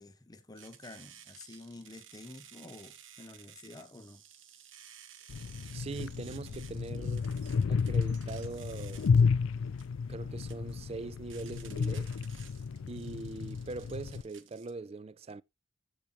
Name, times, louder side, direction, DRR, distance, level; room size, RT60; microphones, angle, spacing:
voice 1, 0.0-4.2, left 2 dB, 20° left, 0.6 m, -50 dB
sound 1, 0.6-14.7, right 9 dB, 75° right, 1.3 m, -55 dB
sound 2, 5.3-14.2, left 5 dB, 80° left, 0.4 m, -32 dB
voice 2, 5.7-7.3 7.7-9.1 10.1-12.2 12.9-15.4, right 3 dB, 30° right, 0.3 m, -42 dB
14.0 x 5.0 x 3.0 m
head